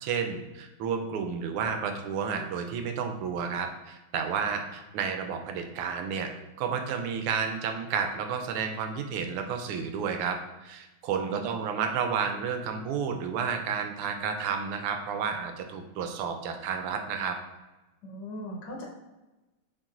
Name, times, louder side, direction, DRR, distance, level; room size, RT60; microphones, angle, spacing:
voice 1, 0.0-17.4, right 6 dB, 90° right, 5 dB, 1.5 m, -31 dB
voice 2, 11.2-11.6 18.0-18.8, equal, 80° left, -2 dB, 1.8 m, -39 dB
6.8 x 2.9 x 2.4 m, 1.1 s
omnidirectional pair, 2.4 m